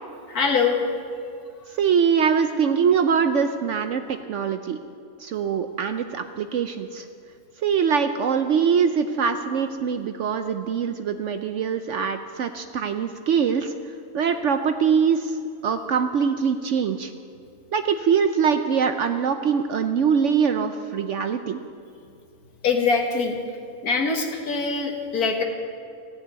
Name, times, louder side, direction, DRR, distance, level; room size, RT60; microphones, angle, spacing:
voice 1, 0.3-0.8 22.6-23.4 23.8-25.4, left 5 dB, 70° left, 2 dB, 2.0 m, -23 dB
voice 2, 1.8-4.8 5.2-7.1 7.6-13.7 14.1-15.4 15.6-17.1 17.7-21.6, right 6 dB, 65° right, 8 dB, 0.8 m, -23 dB
16.0 x 6.9 x 9.1 m, 2.5 s
omnidirectional pair, 1.6 m